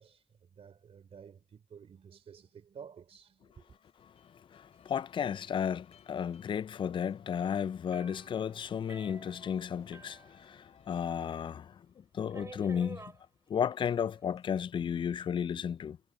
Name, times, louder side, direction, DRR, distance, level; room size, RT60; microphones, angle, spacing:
voice 1, 0.0-3.6, right 7 dB, 60° right, 3.2 m, -52 dB
sound 1, 3.5-11.5, left 8 dB, 65° left, 7.5 m, -62 dB
voice 2, 4.5-11.8 12.1-13.1 13.5-16.0, left 8 dB, 45° left, 0.4 m, -33 dB
sound 2, 7.9-11.1 11.4-11.5 12.3-13.2 14.1-14.6, right 3 dB, 25° right, 6.7 m, -51 dB
cardioid pair, 65°, 12 cm